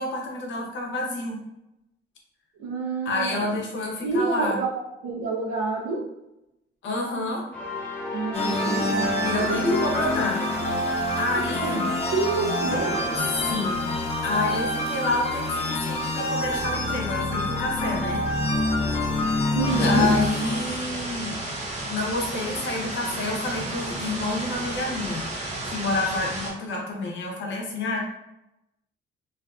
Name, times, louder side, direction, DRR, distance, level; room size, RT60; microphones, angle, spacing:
voice 1, 0.0-1.4 3.1-4.6 6.8-7.5 9.2-10.5 11.2-11.8 13.3-13.9 14.2-18.2 19.7-21.4 21.9-25.3 25.6-28.1, left 2 dB, 70° left, 0 dB, 0.7 m, -29 dB
voice 2, 2.6-3.4 4.0-6.1 8.1-9.8 11.3-13.1 19.5-20.1, right 3 dB, 85° right, -6 dB, 0.6 m, -28 dB
sound 1, 7.5-14.1, equal, 5° left, 0.8 m, -33 dB
sound 2, 8.3-20.6, left 2 dB, 30° left, 0.4 m, -26 dB
sound 3, 19.6-26.5, right 2 dB, 35° right, 0.7 m, -33 dB
2.4 x 2.4 x 2.3 m, 0.89 s
cardioid pair, 90°, 20 cm